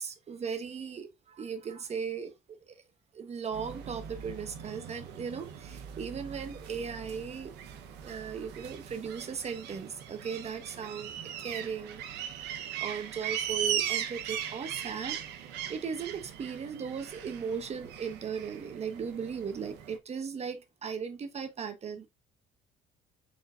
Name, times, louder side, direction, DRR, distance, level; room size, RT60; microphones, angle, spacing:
voice 1, 0.0-2.7 3.1-7.5 8.0-11.1 11.4-12.0 12.5-15.4 15.7-22.1, right 6 dB, 40° right, 1.1 m, -37 dB
sound 1, 3.5-20.0, right 9 dB, 90° right, 0.8 m, -39 dB
4.7 x 4.0 x 2.4 m
cardioid pair, 110°, 17 cm